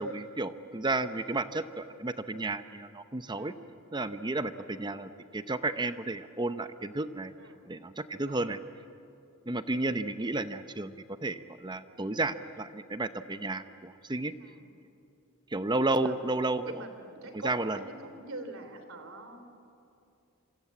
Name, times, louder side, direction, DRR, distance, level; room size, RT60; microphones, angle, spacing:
voice 1, 0.0-3.5 3.9-7.3 7.6-8.6 9.5-14.3 15.5-16.8 17.3-17.8, right 2 dB, 20° right, 11 dB, 0.8 m, -32 dB
voice 2, 8.2-8.6 14.4-14.6 15.9-16.3 16.6-19.6, right 2 dB, 70° right, 8 dB, 3.3 m, -45 dB
26.5 x 25.5 x 8.4 m, 2.6 s
head